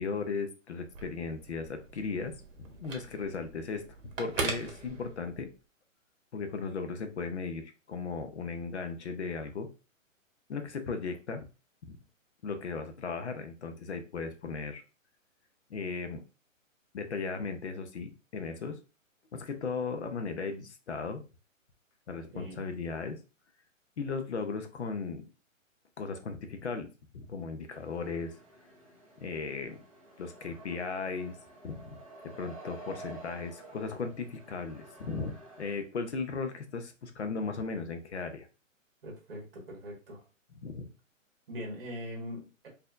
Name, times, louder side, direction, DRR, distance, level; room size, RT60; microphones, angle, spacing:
voice 1, 0.0-3.8 4.2-5.5 6.3-9.7 10.5-11.4 11.8-12.0 12.4-14.8 15.7-16.2 16.9-18.8 19.3-21.2 22.1-23.2 24.0-25.2 26.0-26.9 27.1-28.3 29.2-29.8 30.2-31.3 31.6-32.0 32.2-38.5 40.6-40.9, left 4 dB, 55° left, 7 dB, 0.6 m, -36 dB
Telephone, 0.8-5.6, right 4 dB, 70° right, 1.0 m, -40 dB
sound 1, 27.7-35.8, right 2 dB, 30° right, 0.5 m, -50 dB
voice 2, 39.0-40.2 41.5-42.7, equal, 45° right, -1 dB, 1.4 m, -41 dB
4.1 x 2.7 x 2.3 m, 0.32 s
hypercardioid pair, 175°, 40 cm